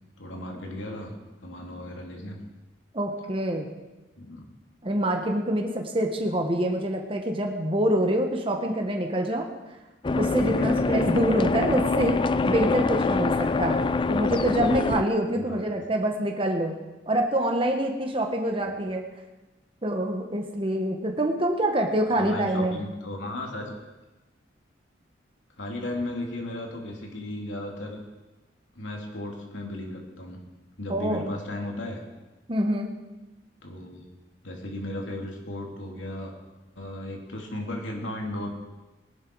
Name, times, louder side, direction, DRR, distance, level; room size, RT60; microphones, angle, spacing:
voice 1, 0.2-1.1 1.4-2.4 4.2-4.4 10.6-10.8 15.3-15.7 18.7-18.8 22.1-23.9 25.6-28.0 28.7-30.4 30.8-32.0 33.6-34.1 34.4-36.3 36.8-38.5, left 1 dB, 90° left, 0 dB, 3.0 m, -35 dB
voice 2, 2.9-3.7 4.8-9.5 10.1-13.8 14.1-16.7 17.1-19.0 19.8-22.8 30.9-31.2 32.5-32.9, right 1 dB, 30° right, 3 dB, 1.3 m, -26 dB
sound 1, 10.0-15.0, left 3 dB, 25° left, 0.4 m, -25 dB
19.0 x 11.5 x 4.7 m, 1.1 s
head